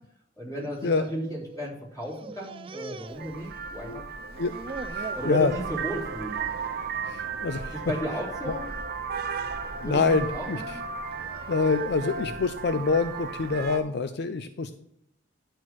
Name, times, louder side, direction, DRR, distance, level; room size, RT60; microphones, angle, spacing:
voice 1, 0.4-4.0 5.1-6.3 7.9-8.6 9.8-10.8 12.2-12.3, equal, 20° left, -4 dB, 3.6 m, -34 dB
sound 1, 0.7-1.7 2.0-3.9 4.2-5.3 5.8-6.2 6.5-6.7 7.5-7.9 8.4-8.8 9.7-11.9, right 4 dB, 30° right, 0.4 m, -44 dB
Vehicle horn car horn honking, 3.1-13.8, right 5 dB, 55° right, 0.8 m, -35 dB
voice 2, 4.9-5.5 7.0-7.8 8.5-8.6 9.8-10.8 11.5-14.7, left 4 dB, 60° left, 10 dB, 0.5 m, -26 dB
11.0 x 4.5 x 6.1 m, 0.75 s
head